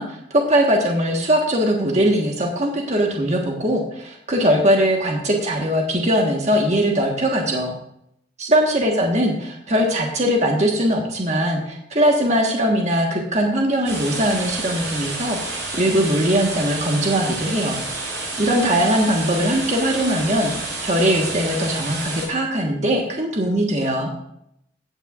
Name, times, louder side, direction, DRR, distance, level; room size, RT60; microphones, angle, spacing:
voice 1, 0.0-7.7 8.4-17.8 18.4-24.1, equal, 40° right, 0 dB, 1.4 m, -20 dB
sound 1, 13.8-22.3, right 2 dB, 80° right, 4.6 m, -29 dB
16.0 x 8.9 x 2.5 m, 0.75 s
head